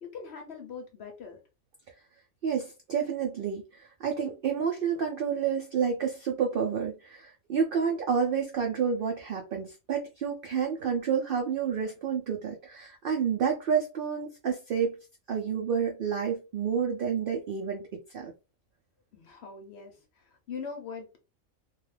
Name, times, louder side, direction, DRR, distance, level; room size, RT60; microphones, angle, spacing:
voice 1, 0.0-1.4 15.5-15.6 19.1-21.2, left 5 dB, 60° left, 0.8 m, -42 dB
voice 2, 2.4-14.9 15.3-18.3, right 7 dB, 75° right, 0.5 m, -29 dB
2.3 x 2.3 x 3.2 m
omnidirectional pair, 1.5 m